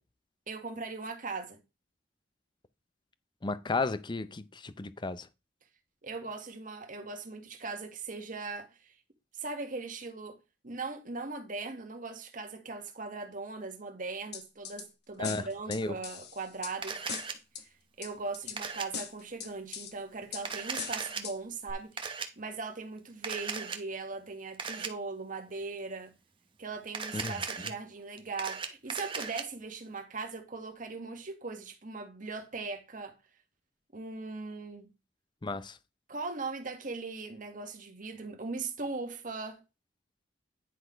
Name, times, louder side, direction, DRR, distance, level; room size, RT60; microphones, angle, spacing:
voice 1, 0.5-1.6 6.0-8.9 9.3-10.4 10.6-17.2 18.0-26.1 26.6-33.2 33.9-34.9 36.1-39.6, right 3 dB, 45° right, 1.5 m, -39 dB
voice 2, 3.4-5.3 15.2-15.4 15.7-15.9 27.1-27.3 35.4-35.7, left 3 dB, 25° left, 0.5 m, -33 dB
sound 1, 14.3-14.8 15.2-16.7 17.1-17.6 18.0-18.6 18.9-19.9 20.3-20.4 20.8-21.4 21.7-21.8, left 7 dB, 60° left, 1.1 m, -40 dB
Camera, 16.8-17.3 18.6-18.9 20.4-21.2 22.0-22.3 23.2-23.8 24.6-24.9 26.9-27.7 28.2-29.4, right 5 dB, 30° right, 1.0 m, -37 dB
10.0 x 4.1 x 5.1 m
head